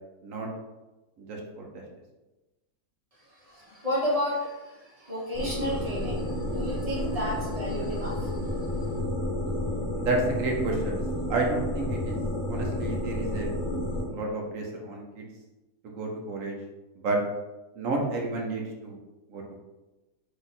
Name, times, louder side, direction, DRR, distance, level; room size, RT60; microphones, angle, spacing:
voice 1, 1.2-1.7 9.9-11.0 11.3-12.2 12.5-13.5 14.1-15.2 15.8-16.5 17.0-17.2 17.8-19.0 19.3-19.6, right 2 dB, 65° right, 0 dB, 1.1 m, -30 dB
voice 2, 3.4-8.5, equal, 25° right, -5 dB, 1.1 m, -32 dB
sound 1, 5.3-14.0, left 1 dB, 50° left, 1.3 m, -31 dB
4.1 x 2.9 x 4.0 m, 1.1 s
omnidirectional pair, 1.6 m